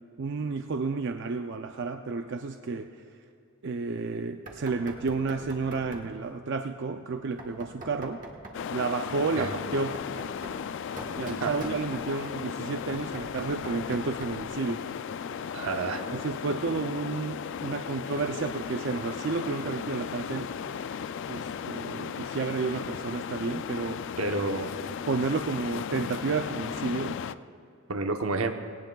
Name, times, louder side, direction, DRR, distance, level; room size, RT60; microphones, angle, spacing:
voice 1, 0.2-2.9 3.6-8.2 8.7-10.0 11.1-14.8 16.1-20.5 21.3-24.0 25.1-27.2, right 4 dB, 55° right, 6 dB, 0.4 m, -31 dB
Knock, 4.5-6.2 7.4-8.7 9.3-12.2 12.7-14.5, right 2 dB, 40° right, 1.4 m, -44 dB
sound 1, 8.5-27.3, left 7 dB, 60° left, 0.3 m, -36 dB
voice 2, 15.5-16.1 24.2-24.7 27.9-28.5, right 3 dB, 80° right, 5 dB, 0.9 m, -29 dB
18.0 x 18.0 x 2.3 m, 2.5 s
head